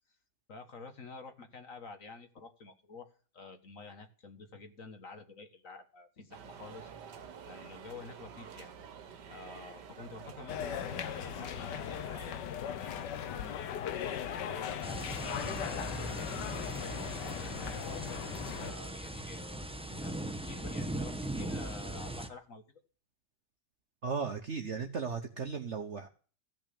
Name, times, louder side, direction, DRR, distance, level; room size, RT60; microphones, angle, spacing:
voice 1, 0.5-6.9 7.5-8.7 9.3-13.6 14.2-16.5 17.1-22.6, left 3 dB, 50° left, 7 dB, 2.0 m, -50 dB
sound 1, 6.3-12.3, right 7 dB, 75° right, 1.8 m, -49 dB
sound 2, 10.5-18.7, left 9 dB, 80° left, 1.5 m, -38 dB
sound 3, 14.8-22.3, right 1 dB, 5° right, 0.6 m, -39 dB
voice 2, 24.0-26.1, right 5 dB, 45° right, 5 dB, 1.1 m, -36 dB
15.0 x 6.1 x 8.6 m, 0.39 s
omnidirectional pair, 1.9 m